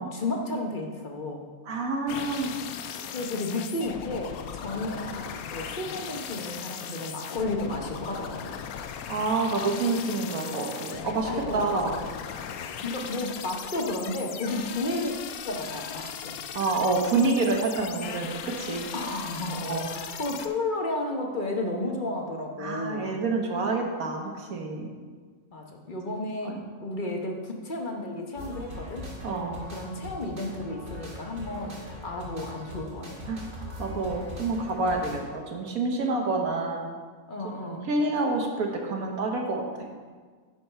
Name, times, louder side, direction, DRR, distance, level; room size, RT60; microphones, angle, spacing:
voice 1, 0.1-1.5 3.1-8.5 11.3-11.7 12.8-15.2 15.4-16.3 18.9-23.2 25.5-29.1 29.7-33.3 37.3-37.9, left 2 dB, 40° left, 1 dB, 1.0 m, -32 dB
voice 2, 1.7-2.5 9.1-12.0 16.5-18.9 19.7-19.9 22.6-24.9 26.4-26.6 29.2-29.7 33.3-33.4 33.8-36.9 37.6-39.9, right 3 dB, 75° right, 2 dB, 1.6 m, -28 dB
sound 1, 2.1-20.5, left 8 dB, 85° left, 1.1 m, -38 dB
sound 2, 28.4-35.2, left 1 dB, 35° right, 2.1 m, -41 dB
10.5 x 4.6 x 5.6 m, 1.5 s
omnidirectional pair, 1.5 m